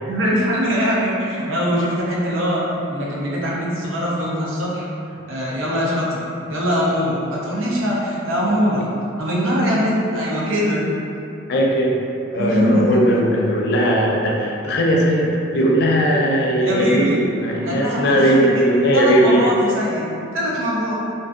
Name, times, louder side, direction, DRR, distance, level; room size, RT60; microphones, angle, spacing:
voice 1, 0.0-4.9 5.3-6.2 6.5-8.9 9.2-10.9 12.4-13.0 16.6-17.2 17.7-18.6 18.9-20.9, equal, 85° right, -5 dB, 0.6 m, -22 dB
voice 2, 11.5-12.0 12.3-19.5, equal, 55° left, -2 dB, 0.3 m, -18 dB
2.5 x 2.3 x 2.4 m, 2.7 s
head